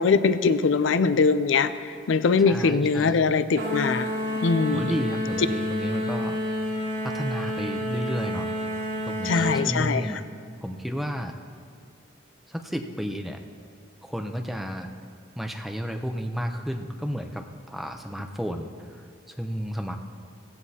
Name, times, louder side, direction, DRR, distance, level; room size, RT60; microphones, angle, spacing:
voice 1, 0.0-4.1 4.4-5.0 9.2-10.0, left 4 dB, 75° left, 13 dB, 0.4 m, -22 dB
voice 2, 2.4-3.2 4.7-6.4 7.0-10.2 10.6-11.4 12.5-13.4 14.0-14.9 15.4-20.0, equal, ahead, 4 dB, 0.6 m, -32 dB
sound 1, 3.6-9.7, left 1 dB, 65° right, 4.0 m, -29 dB
16.0 x 15.5 x 2.8 m, 2.2 s
head